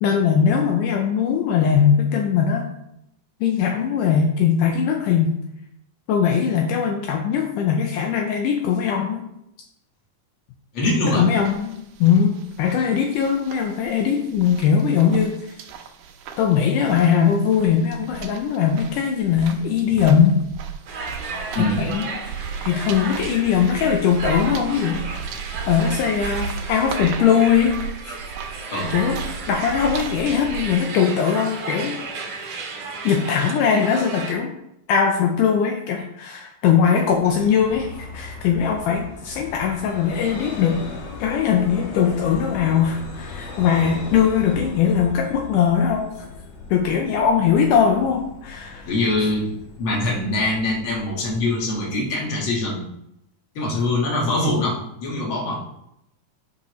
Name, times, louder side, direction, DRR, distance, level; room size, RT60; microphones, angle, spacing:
voice 1, 0.0-2.7 3.4-5.4 6.1-9.2 11.1-11.8 12.0-15.4 16.4-20.4 21.6-22.1 22.6-25.0 25.7-27.7 28.0-28.2 28.9-29.2 29.5-32.0 33.0-34.5 34.9-40.8 41.2-46.1 46.7-48.9, left 7 dB, 80° left, 2 dB, 2.1 m, -20 dB
voice 2, 10.7-11.3 21.5-21.9 28.7-28.9 48.9-49.5 49.8-52.8 53.6-55.7, left 2 dB, 45° left, -3 dB, 2.3 m, -23 dB
sound 1, 11.1-30.7, right 6 dB, 85° right, 2.3 m, -36 dB
sound 2, 20.9-34.3, right 4 dB, 65° right, 1.7 m, -33 dB
Vehicle, 36.9-52.4, left 4 dB, 60° left, 2.1 m, -38 dB
10.0 x 5.8 x 3.1 m, 0.80 s
omnidirectional pair, 3.8 m